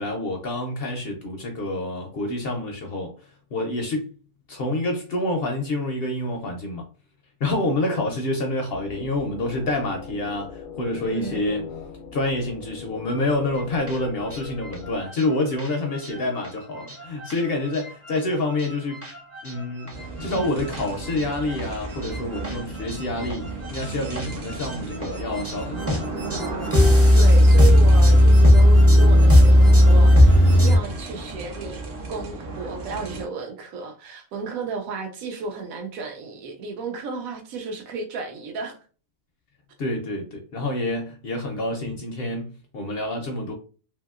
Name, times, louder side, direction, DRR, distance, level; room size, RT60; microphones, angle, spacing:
voice 1, 0.0-3.1 3.5-4.1 4.5-6.8 7.4-11.6 12.1-19.0 19.4-19.9 20.2-26.2 39.8-43.5, left 2 dB, 65° left, 0.6 m, -27 dB
sound 1, 8.7-15.0, left 6 dB, 80° left, 1.0 m, -39 dB
voice 2, 11.0-11.5 27.1-31.8 32.1-38.8, right 4 dB, 85° right, 1.0 m, -33 dB
sound 2, 13.6-30.8, left 1 dB, 20° right, 0.3 m, -17 dB
sound 3, 19.9-33.3, right 3 dB, 50° right, 0.7 m, -34 dB
2.8 x 2.7 x 2.3 m
omnidirectional pair, 1.4 m